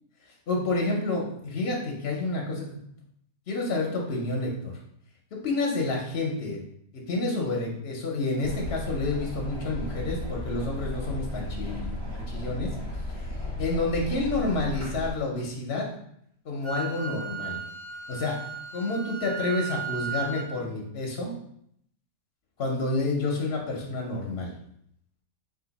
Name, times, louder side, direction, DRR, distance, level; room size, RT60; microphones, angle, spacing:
voice 1, 0.5-2.8 3.5-4.7 5.3-6.6 6.9-15.9 16.4-17.6 18.1-18.4 18.7-21.3 22.6-24.5, left 2 dB, 55° left, -1 dB, 0.7 m, -29 dB
sound 1, 8.4-15.1, left 1 dB, 70° right, 1.9 m, -34 dB
Wind instrument woodwind instrument, 16.6-20.5, right 6 dB, 50° right, 0.8 m, -35 dB
4.2 x 2.5 x 4.0 m, 0.71 s
omnidirectional pair, 1.8 m